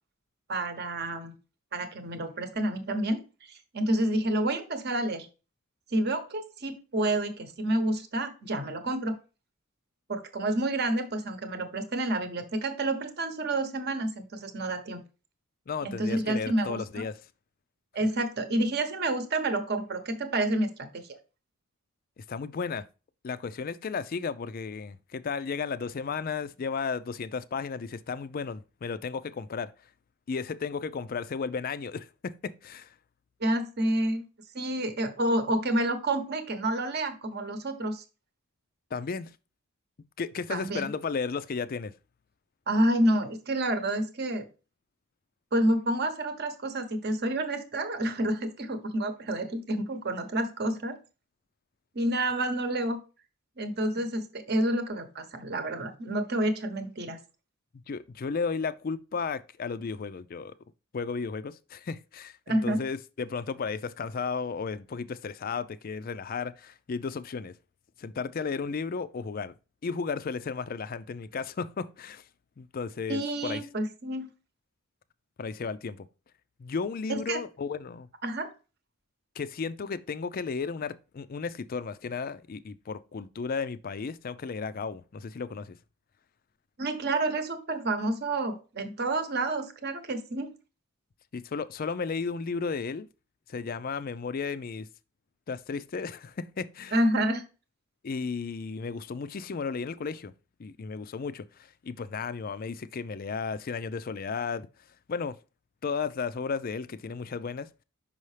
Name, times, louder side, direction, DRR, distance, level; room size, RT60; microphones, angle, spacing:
voice 1, 0.5-1.4 1.7-3.2 3.5-5.3 5.9-9.2 10.1-15.0 15.8-17.1 17.9-21.2 33.4-34.3 34.5-38.0 40.5-40.9 42.7-44.5 45.5-51.0 51.9-53.0 53.6-57.2 62.5-62.8 73.1-74.3 77.1-77.4 78.2-78.5 86.8-90.5 96.9-97.4, right 1 dB, 45° right, 0.9 m, -29 dB
voice 2, 15.7-17.2 22.2-22.9 23.2-29.7 30.3-33.0 38.9-39.3 40.2-41.9 57.9-60.5 60.9-67.5 68.0-69.5 69.8-72.2 72.6-73.6 75.4-76.1 76.6-78.1 79.4-85.8 91.3-93.1 93.5-94.9 95.5-97.0 98.0-100.3 100.6-104.7 105.1-105.4 105.8-107.8, left 5 dB, 40° left, 0.4 m, -34 dB
5.5 x 5.5 x 3.2 m
head